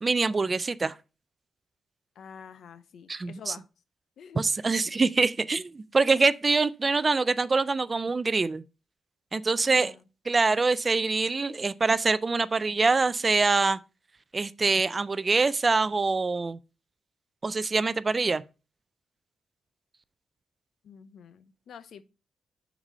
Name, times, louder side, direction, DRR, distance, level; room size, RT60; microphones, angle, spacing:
voice 1, 0.0-0.9 3.1-3.5 4.3-8.6 9.3-9.9 10.3-13.8 14.3-16.6 17.4-18.4, right 3 dB, 30° right, 0.3 m, -25 dB
voice 2, 2.2-3.6 4.2-4.4 9.6-10.0 20.8-22.0, left 7 dB, 70° left, 0.6 m, -47 dB
5.8 x 4.1 x 5.4 m
cardioid pair, 110°, 0 cm